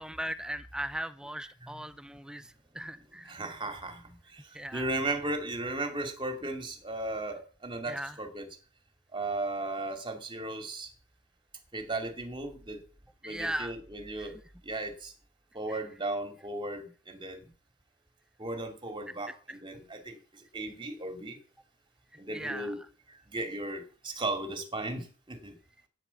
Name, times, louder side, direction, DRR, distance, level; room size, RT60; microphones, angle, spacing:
voice 1, 0.0-3.3 4.5-4.9 7.9-8.2 13.2-13.7 14.2-14.3 15.7-15.8 19.3-19.6 22.3-22.9, right 1 dB, 5° right, 0.5 m, -38 dB
voice 2, 3.3-4.4 4.7-8.5 9.1-10.9 11.7-12.8 13.2-14.4 14.6-15.1 15.5-17.5 18.4-21.4 22.2-22.8 23.1-25.6, right 2 dB, 20° right, 2.8 m, -36 dB
11.5 x 9.7 x 7.2 m
head